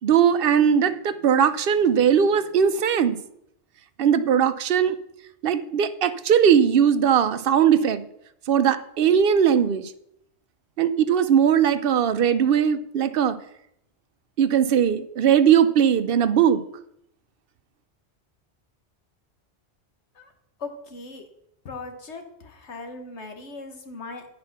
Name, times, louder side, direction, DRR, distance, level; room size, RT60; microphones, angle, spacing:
voice 1, 0.0-3.2 4.0-5.0 5.4-8.1 8.5-9.9 10.8-13.4 14.4-16.6, right 8 dB, 60° right, 13 dB, 0.8 m, -19 dB
voice 2, 20.6-21.2 21.6-24.3, left 3 dB, 85° left, 5 dB, 1.6 m, -38 dB
9.5 x 6.1 x 5.9 m, 0.76 s
omnidirectional pair, 1.1 m